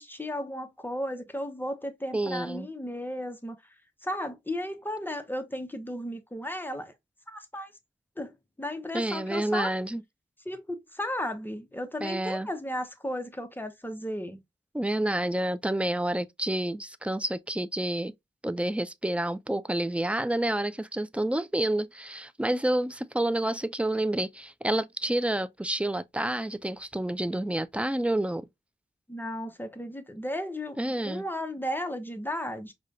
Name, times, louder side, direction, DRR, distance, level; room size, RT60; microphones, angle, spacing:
voice 1, 0.0-3.6 4.0-6.9 7.3-7.7 8.2-9.7 10.5-14.4 29.1-30.8 31.0-32.7, left 1 dB, 10° left, 0.8 m, -34 dB
voice 2, 2.1-2.7 8.9-10.0 12.0-12.5 14.7-18.1 18.4-28.5 30.8-31.2, right 1 dB, 5° right, 0.3 m, -29 dB
4.9 x 2.2 x 2.5 m
cardioid pair, 55°, 19 cm